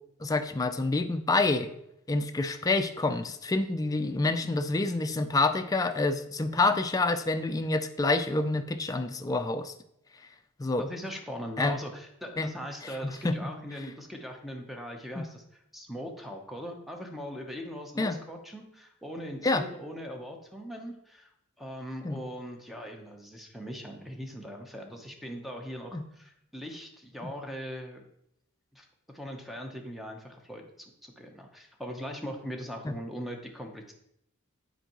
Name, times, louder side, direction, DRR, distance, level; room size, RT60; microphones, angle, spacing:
voice 1, 0.2-1.7 2.1-9.7 10.6-10.9 11.6-11.8 12.4-12.5 13.2-13.4 15.2-15.3 18.0-18.2 19.4-19.7 22.0-22.2 25.9-26.0 27.2-27.3 32.9-33.0, left 3 dB, 15° left, 8 dB, 0.3 m, -27 dB
voice 2, 10.8-21.3 21.6-28.1 28.7-33.9, equal, ahead, 2 dB, 0.7 m, -40 dB
7.9 x 4.5 x 2.9 m, 0.77 s
head